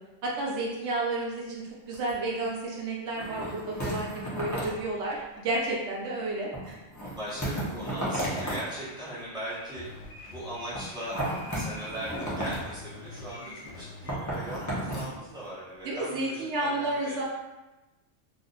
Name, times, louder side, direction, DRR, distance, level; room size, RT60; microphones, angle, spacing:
voice 1, 0.2-6.8 15.8-17.2, right 2 dB, 75° right, -3 dB, 0.9 m, -31 dB
sound 1, 1.4-1.6 1.9-2.1 2.5-2.6 3.1-4.8 6.5-8.6 9.8-10.1 10.7-12.7 14.1-15.1 15.5-15.6, right 1 dB, 20° left, 0.6 m, -33 dB
voice 2, 7.0-9.9 10.2-11.2 11.5-17.2, equal, 5° right, -10 dB, 1.1 m, -39 dB
sound 2, 8.0-14.2, left 2 dB, 85° left, 1.0 m, -46 dB
2.5 x 2.4 x 3.8 m, 1.1 s
omnidirectional pair, 1.2 m